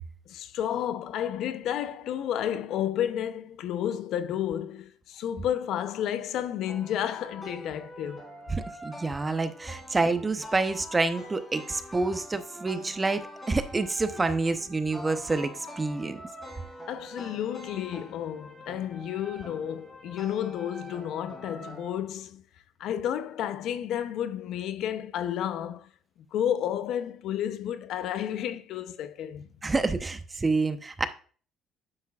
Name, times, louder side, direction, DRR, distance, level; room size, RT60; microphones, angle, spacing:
voice 1, 0.3-8.2 16.9-22.4 22.8-25.9 26.3-29.5, left 10 dB, 70° left, 0.6 m, -31 dB
sound 1, 6.7-21.9, equal, 15° left, 3.2 m, -45 dB
voice 2, 8.5-16.2 29.6-31.0, right 3 dB, 20° right, 0.8 m, -28 dB
9.6 x 7.2 x 2.4 m
cardioid pair, 110°, 0 cm